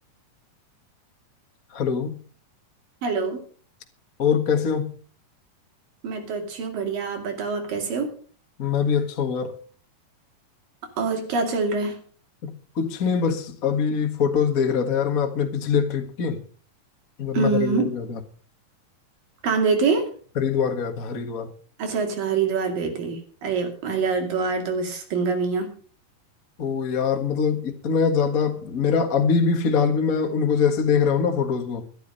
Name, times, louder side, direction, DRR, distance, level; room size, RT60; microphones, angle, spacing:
voice 1, 1.7-2.2 4.2-4.9 8.6-9.5 12.4-16.4 17.2-18.2 20.4-21.5 26.6-31.8, left 6 dB, 40° left, 1.3 m, -23 dB
voice 2, 3.0-3.4 6.0-8.1 11.0-12.0 17.3-17.9 19.4-20.1 21.8-25.7, right 4 dB, 80° right, 4.2 m, -25 dB
13.0 x 12.0 x 5.4 m
omnidirectional pair, 3.9 m